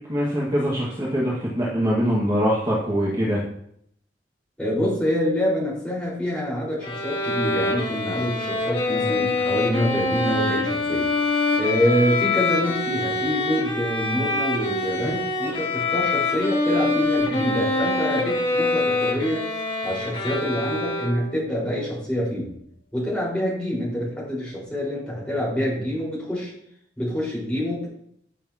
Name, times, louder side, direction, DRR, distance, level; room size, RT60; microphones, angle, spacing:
voice 1, 0.0-3.4, equal, 25° right, -6 dB, 1.8 m, -23 dB
voice 2, 4.6-11.1 11.6-19.4 19.8-22.5 22.9-26.5 27.0-27.9, equal, 5° left, -7 dB, 4.8 m, -26 dB
Bowed string instrument, 6.8-21.5, left 2 dB, 30° left, 1.6 m, -25 dB
15.0 x 7.2 x 2.9 m, 0.69 s
head